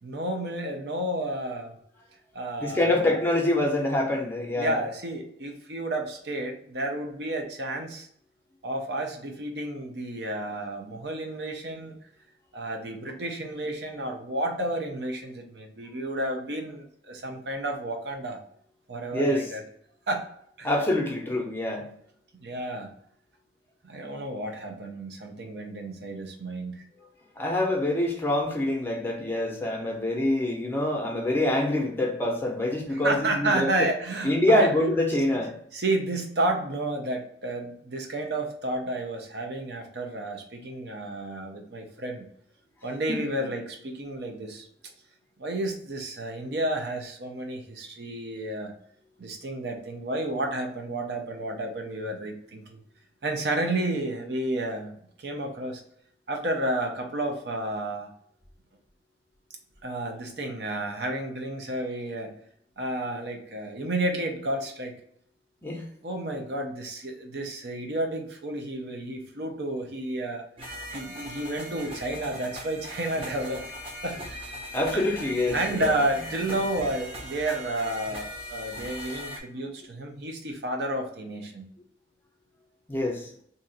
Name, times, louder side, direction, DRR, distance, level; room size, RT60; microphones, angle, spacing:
voice 1, 0.0-1.8 2.3-3.2 4.6-8.1 8.6-12.0 12.5-18.4 18.9-19.6 20.1-20.2 20.6-20.7 22.4-22.9 23.8-26.8 32.9-34.7 35.7-42.2 42.8-44.7 45.4-48.7 49.2-52.8 53.2-55.8 56.3-58.1 59.8-62.3 62.8-64.9 66.0-70.4 70.9-73.6 74.0-74.2 74.9-75.2 75.5-81.7, right 1 dB, 70° right, 0.7 m, -31 dB
voice 2, 2.6-4.8 19.1-19.5 20.6-21.8 27.4-33.7 34.2-35.5 43.1-43.5 65.6-65.8 74.7-76.0 82.9-83.3, left 1 dB, 10° left, 0.6 m, -25 dB
sound 1, 70.6-79.4, equal, 30° right, 0.8 m, -39 dB
2.7 x 2.5 x 4.1 m
head